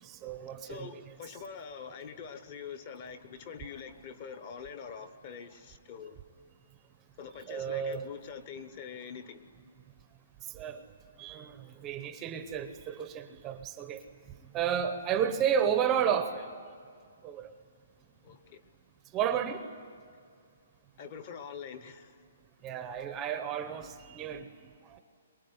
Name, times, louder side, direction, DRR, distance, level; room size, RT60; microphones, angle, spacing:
voice 1, 0.0-1.1 7.5-8.1 10.5-10.8 11.2-11.6 11.8-14.0 14.5-16.5 17.2-17.5 19.1-19.7 22.6-24.5 24.9-25.0, right 8 dB, 15° right, 8 dB, 0.8 m, -32 dB
voice 2, 0.6-6.2 7.2-9.4 18.2-18.6 21.0-22.2, left 6 dB, 30° left, 11 dB, 1.0 m, -44 dB
23.5 x 21.5 x 9.6 m, 2.2 s
hypercardioid pair, 175°, 0 cm